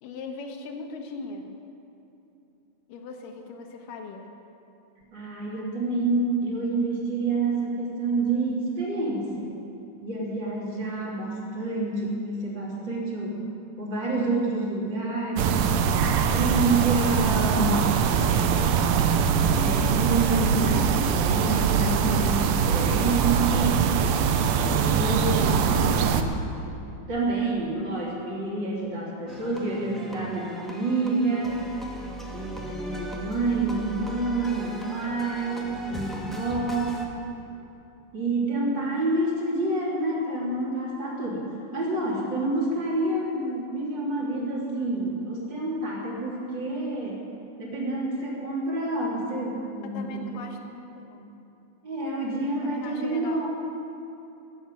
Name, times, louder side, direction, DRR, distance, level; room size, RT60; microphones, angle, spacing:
voice 1, 0.0-1.6 2.9-4.3 49.9-51.3 52.6-53.5, left 4 dB, 75° left, 3 dB, 2.9 m, -39 dB
voice 2, 5.1-9.6 10.0-13.5 13.8-15.7 16.3-18.0 19.3-23.8 24.7-26.3 27.1-31.7 32.3-37.1 38.1-47.2 47.6-50.4 51.8-53.5, right 2 dB, 35° right, -4 dB, 3.5 m, -28 dB
sound 1, 15.4-26.2, right 7 dB, 75° right, 1.6 m, -22 dB
sound 2, 29.3-37.1, equal, ahead, 0.6 m, -38 dB
19.5 x 8.0 x 9.1 m, 2.9 s
omnidirectional pair, 4.0 m